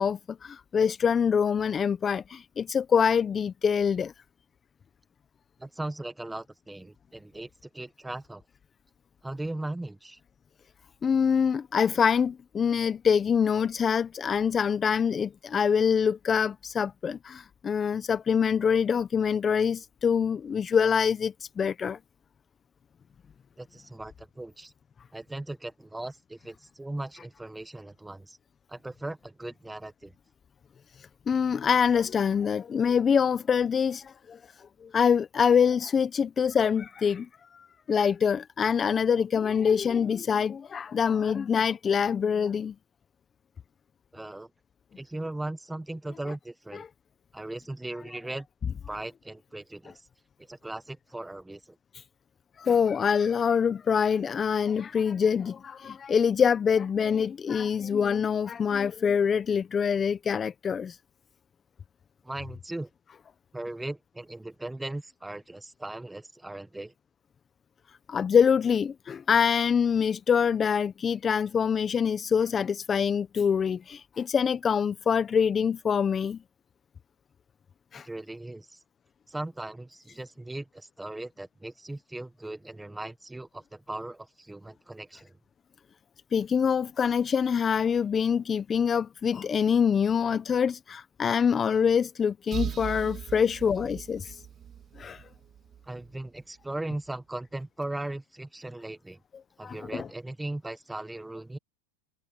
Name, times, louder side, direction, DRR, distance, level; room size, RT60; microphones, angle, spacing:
voice 1, 0.0-4.1 11.0-22.0 31.3-34.4 34.8-37.3 37.9-42.7 52.6-60.9 68.1-76.4 77.9-78.0 86.3-94.3 95.0-95.2 99.6-100.1, left 7 dB, 20° left, 0.9 m, -25 dB
voice 2, 5.6-8.4 9.2-10.2 23.6-24.7 25.1-28.4 28.7-30.1 44.1-44.5 45.0-46.9 47.3-48.5 48.9-50.1 50.5-51.8 62.2-62.9 63.5-66.9 78.0-78.8 79.3-85.4 95.8-99.2 99.6-101.6, right 2 dB, 5° right, 1.1 m, -38 dB
sound 1, 92.5-96.2, right 9 dB, 30° right, 2.5 m, -39 dB
hypercardioid pair, 120°, 0 cm